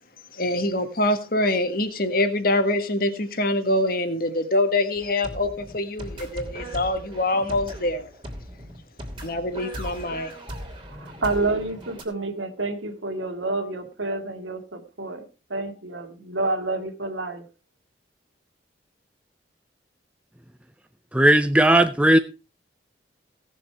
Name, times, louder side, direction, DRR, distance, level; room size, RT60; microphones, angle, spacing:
voice 1, 0.3-8.1 9.2-10.3, left 1 dB, 50° left, 1.7 m, -24 dB
sound 1, 4.9-12.0, equal, 25° right, 2.9 m, -38 dB
voice 2, 10.5-17.5, right 2 dB, 85° right, 2.2 m, -29 dB
voice 3, 21.1-22.2, right 1 dB, 5° right, 0.5 m, -16 dB
17.5 x 7.0 x 4.7 m
head